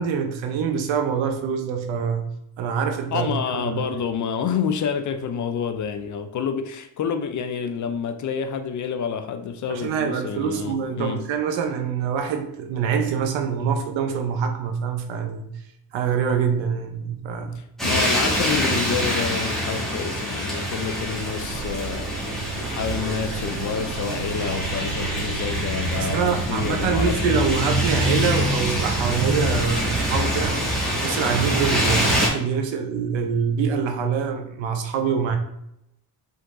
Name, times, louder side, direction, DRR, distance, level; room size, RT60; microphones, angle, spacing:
voice 1, 0.0-4.0 9.7-15.5 15.9-17.6 26.0-30.6 31.0-35.4, right 6 dB, 75° right, 0.9 m, -25 dB
voice 2, 3.1-11.2 17.5-27.5, left 7 dB, 40° left, 0.5 m, -28 dB
sound 1, 17.8-32.3, equal, ahead, 1.6 m, -25 dB
sound 2, 20.9-30.9, right 6 dB, 55° right, 0.5 m, -34 dB
5.1 x 3.8 x 2.6 m
cardioid pair, 105°, 46 cm